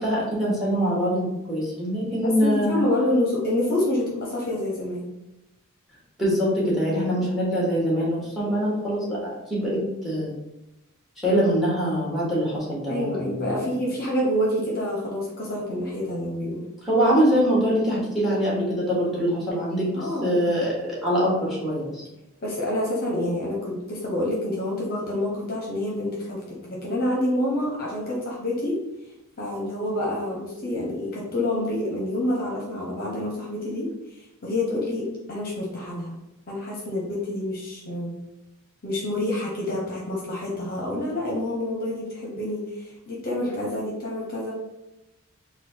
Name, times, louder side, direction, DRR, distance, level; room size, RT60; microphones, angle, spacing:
voice 1, 0.0-2.8 6.2-10.4 11.2-13.7 16.8-22.0, equal, ahead, -6 dB, 1.5 m, -24 dB
voice 2, 2.2-5.1 12.9-16.6 19.9-20.4 22.4-28.8 29.4-33.9 34.4-36.2 36.5-38.2 38.8-44.5, left 1 dB, 45° left, -3 dB, 0.9 m, -27 dB
4.1 x 2.4 x 4.4 m, 0.94 s
head